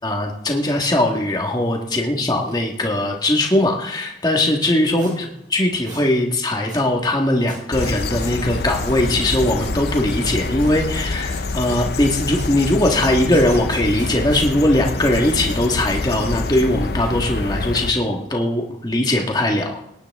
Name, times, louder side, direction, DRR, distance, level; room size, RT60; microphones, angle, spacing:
voice 1, 0.0-5.3 5.5-19.8, left 1 dB, 20° left, 1 dB, 1.6 m, -20 dB
sound 1, 2.5-2.6 2.8-2.9 5.0-5.1 5.9-6.0 6.7-6.8 7.5-10.4 10.6-14.4, right 2 dB, 25° right, 3.5 m, -41 dB
sound 2, 7.7-17.9, left 3 dB, 60° left, 0.6 m, -26 dB
18.5 x 9.8 x 3.6 m, 0.78 s
head